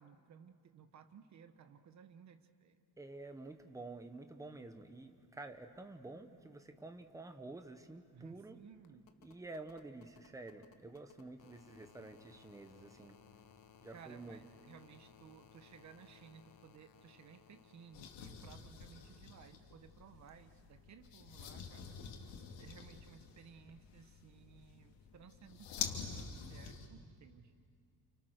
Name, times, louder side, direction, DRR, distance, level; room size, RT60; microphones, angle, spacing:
voice 1, 0.0-2.8 8.1-9.1 13.9-22.0 22.6-27.5, right 7 dB, 40° right, 8 dB, 1.3 m, -58 dB
voice 2, 3.0-8.6 9.2-13.2 13.8-14.4, right 2 dB, 10° right, 7 dB, 1.0 m, -50 dB
sound 1, 7.3-18.2 19.6-19.7, left 8 dB, 50° left, 1.4 m, -63 dB
sound 2, 17.9-26.9, left 7 dB, 85° left, 2.9 m, -47 dB
30.0 x 29.0 x 6.6 m, 2.2 s
cardioid pair, 180°, 42 cm